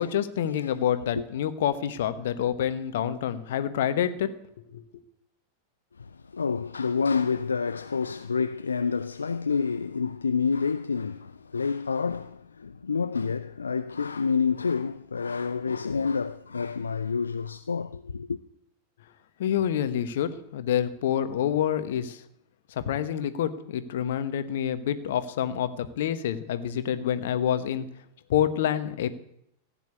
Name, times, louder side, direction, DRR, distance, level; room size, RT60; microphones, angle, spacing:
voice 1, 0.0-4.3 4.7-4.8 19.4-22.2 22.9-27.8 28.3-29.1, left 10 dB, 55° left, 1.2 m, -27 dB
voice 2, 6.3-18.4, left 5 dB, 75° left, 0.5 m, -28 dB
15.0 x 9.0 x 8.4 m
figure-of-eight pair, 90°, 0 cm